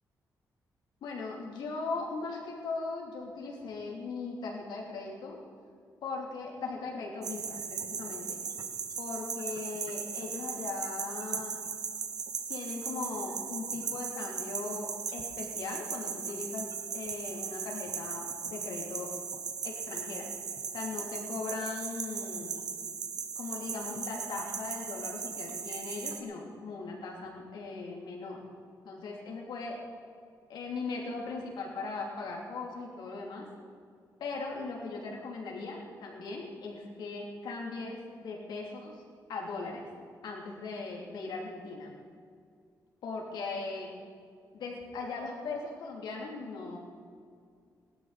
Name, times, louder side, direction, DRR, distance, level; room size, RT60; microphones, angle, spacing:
voice 1, 1.0-5.4 6.0-8.4 9.0-11.6 12.5-19.1 19.6-20.3 20.7-22.6 23.3-28.4 28.8-29.8 30.5-33.5 34.2-39.0 39.3-39.9 40.2-41.9 43.0-43.9 44.5-46.8, left 3 dB, 85° left, -1 dB, 3.1 m, -39 dB
sound 1, 7.2-26.2, right 6 dB, 60° right, 1.4 m, -38 dB
21.5 x 12.5 x 4.2 m, 2.2 s
cardioid pair, 105°, 7 cm